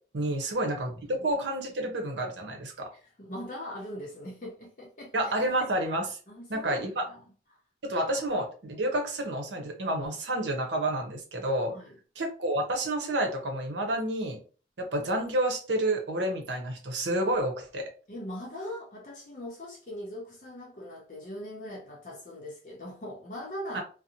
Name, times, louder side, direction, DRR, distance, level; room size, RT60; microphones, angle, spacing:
voice 1, 0.1-2.9 5.1-6.2 6.5-7.1 7.8-11.7 12.2-14.4 14.8-17.8 23.7-23.8, right 1 dB, 85° right, 0.7 m, -29 dB
voice 2, 2.9-5.3 6.3-7.2 11.6-12.0 18.1-23.8, equal, 45° left, 0.6 m, -41 dB
2.6 x 2.0 x 2.8 m
head